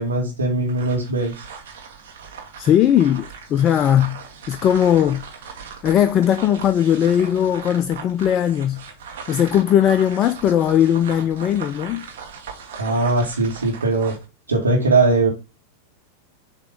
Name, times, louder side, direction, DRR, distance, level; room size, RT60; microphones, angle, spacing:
voice 1, 0.0-1.4 12.8-14.2 14.5-15.3, right 2 dB, 75° right, 1.5 m, -20 dB
sound 1, 0.6-14.3, right 6 dB, 55° right, 1.4 m, -39 dB
voice 2, 2.6-4.2 4.5-5.3 5.8-8.8 9.3-12.1, left 10 dB, 30° left, 0.3 m, -18 dB
6.7 x 3.0 x 4.9 m
figure-of-eight pair, 90°, 0 cm